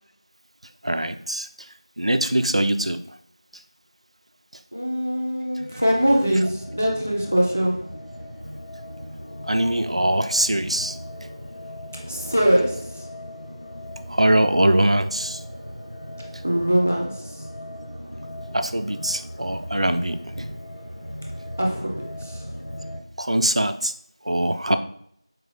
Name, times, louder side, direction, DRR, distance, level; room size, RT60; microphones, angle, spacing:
voice 1, 0.8-3.2 3.5-3.6 5.7-5.8 6.2-6.3 9.4-11.0 14.1-15.4 16.3-16.4 18.5-20.6 23.2-23.9 24.2-24.8, right 1 dB, 80° right, 9 dB, 0.3 m, -23 dB
voice 2, 4.7-7.8 12.0-13.1 16.4-17.4 21.6-22.4, equal, 20° left, -1 dB, 0.4 m, -22 dB
sound 1, 5.6-23.0, equal, 85° left, 0.7 m, -38 dB
4.6 x 2.0 x 3.1 m, 0.67 s
figure-of-eight pair, 180°, 3 cm